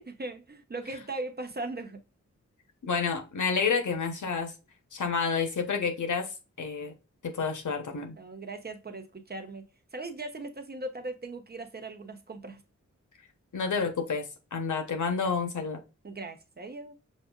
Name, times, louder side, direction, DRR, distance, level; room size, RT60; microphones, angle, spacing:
voice 1, 0.0-2.0 8.2-12.6 16.0-17.0, right 2 dB, 35° right, 0.7 m, -39 dB
voice 2, 2.8-4.5 4.9-6.3 6.6-6.9 7.2-8.1 13.5-15.8, left 5 dB, 90° left, 1.0 m, -29 dB
6.3 x 2.5 x 2.4 m
wide cardioid pair, 95°, 30 cm